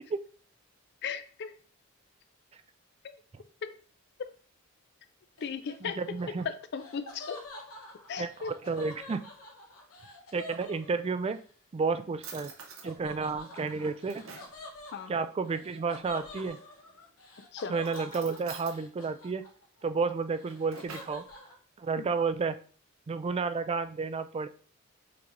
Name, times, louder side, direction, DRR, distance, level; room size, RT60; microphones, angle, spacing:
voice 1, 1.0-1.5 3.6-3.7 5.4-6.0 6.7-7.4 8.1-8.5 14.9-15.1 17.5-17.7 22.0-22.1, left 6 dB, 55° left, 10 dB, 0.5 m, -36 dB
Laughter, 5.4-11.4 12.8-19.8 20.1-21.5, left 2 dB, 90° left, 1.1 m, -47 dB
voice 2, 5.8-6.5 8.2-9.3 10.3-11.4 11.7-12.5 12.8-14.2 15.1-16.6 17.7-19.4 19.8-21.3 21.8-22.6 23.1-24.5, right 4 dB, 30° right, 11 dB, 0.3 m, -31 dB
Drawer open or close, 10.3-11.3 11.8-11.9 12.2-12.9 13.5-14.6 16.5-17.0 17.8-18.8 20.2-21.2, right 5 dB, 70° right, 0.9 m, -48 dB
5.8 x 3.3 x 2.6 m, 0.42 s
head